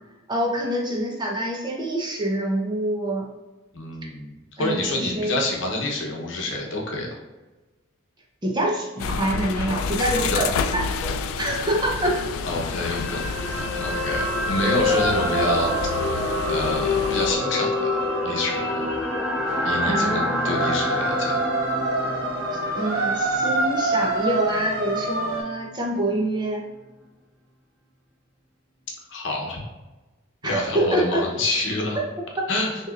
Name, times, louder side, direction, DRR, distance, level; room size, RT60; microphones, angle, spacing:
voice 1, 0.3-3.2 4.6-5.4 8.4-12.3 14.6-14.7 19.8-20.6 22.5-26.6 30.4-31.2, right 1 dB, 20° right, -2 dB, 0.6 m, -26 dB
voice 2, 3.7-7.1 10.2-10.4 12.4-15.7 16.5-18.9 19.6-21.4 29.1-29.6 30.4-32.0 32.5-32.7, left 2 dB, 65° left, -1 dB, 0.9 m, -27 dB
sound 1, 9.0-17.3, left 5 dB, 85° left, 0.3 m, -29 dB
sound 2, 12.7-25.0 25.3-25.5, left 2 dB, 5° right, 1.1 m, -27 dB
sound 3, 14.8-25.4, right 2 dB, 50° right, 1.3 m, -28 dB
6.0 x 3.0 x 2.4 m, 1.2 s
head